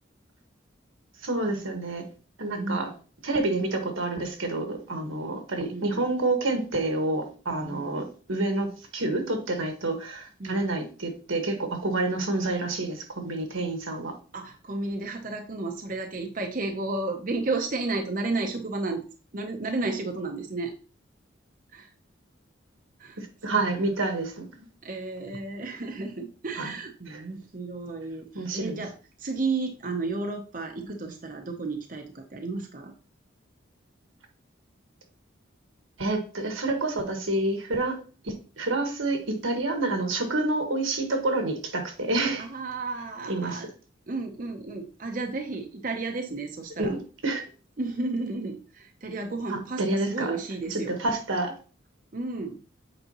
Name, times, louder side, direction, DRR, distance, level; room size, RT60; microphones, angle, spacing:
voice 1, 1.2-2.1 2.4-2.9 3.2-14.1 23.2-24.5 26.6-26.7 27.1-27.2 28.3-28.7 30.8-30.9 36.0-38.0 38.2-42.5 43.3-43.6 46.8-47.4 49.5-50.4 50.7-51.5, right 2 dB, 85° right, 1.6 m, -28 dB
voice 2, 2.6-2.9 5.7-6.1 7.7-7.9 10.4-10.7 14.3-19.0 19.3-20.7 21.7-21.9 23.0-23.6 24.8-32.9 42.4-43.7 44.1-46.9 47.8-51.0 52.1-52.6, right 3 dB, 45° right, 0.7 m, -32 dB
8.0 x 5.0 x 2.9 m
head